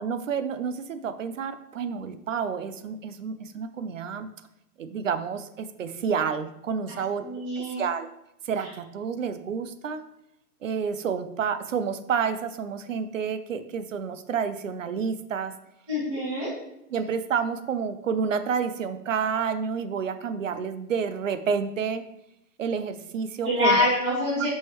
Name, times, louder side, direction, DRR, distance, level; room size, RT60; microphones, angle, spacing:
voice 1, 0.0-4.3 4.8-7.2 7.6-8.1 8.5-10.0 10.6-15.5 16.9-22.0 22.6-23.8 24.4-24.5, right 6 dB, 55° right, 11 dB, 0.5 m, -29 dB
voice 2, 6.9-7.8 15.9-16.5 23.4-24.5, left 1 dB, 10° right, -12 dB, 2.2 m, -25 dB
6.1 x 5.6 x 3.0 m, 0.84 s
hypercardioid pair, 175°, 48 cm